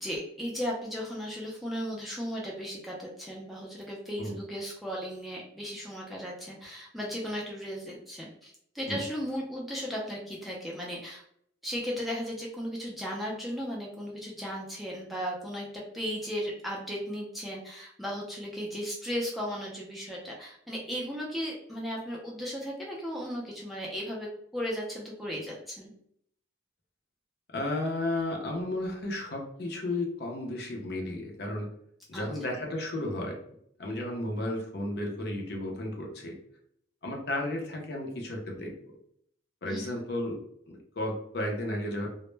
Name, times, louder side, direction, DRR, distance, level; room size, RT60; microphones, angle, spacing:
voice 1, 0.0-11.2 11.6-25.9 32.1-32.2 39.6-40.0, equal, ahead, -4 dB, 0.3 m, -36 dB
voice 2, 27.5-31.7 32.1-33.4 33.8-36.4 37.0-38.7 39.6-40.4 40.7-42.1, left 1 dB, 55° left, 1 dB, 0.5 m, -33 dB
2.1 x 2.0 x 3.1 m, 0.69 s
head